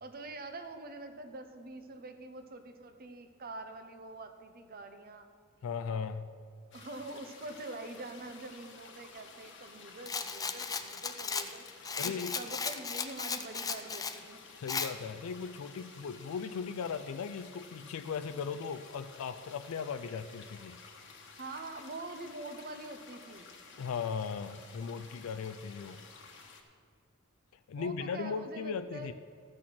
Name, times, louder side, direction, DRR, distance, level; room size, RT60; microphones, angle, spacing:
voice 1, 0.0-5.3 6.7-11.7 12.0-14.4 21.4-23.5 27.8-29.1, right 2 dB, 45° right, 8 dB, 0.8 m, -45 dB
voice 2, 5.6-6.3 12.0-12.3 14.6-20.8 23.8-26.0 27.7-29.1, left 6 dB, 85° left, 9 dB, 0.4 m, -37 dB
sound 1, 6.7-26.6, left 5 dB, 65° left, 1.1 m, -53 dB
Rattle, 10.1-14.2 14.7-14.9, left 5 dB, 15° left, 0.4 m, -36 dB
13.5 x 6.2 x 6.0 m, 2.1 s
head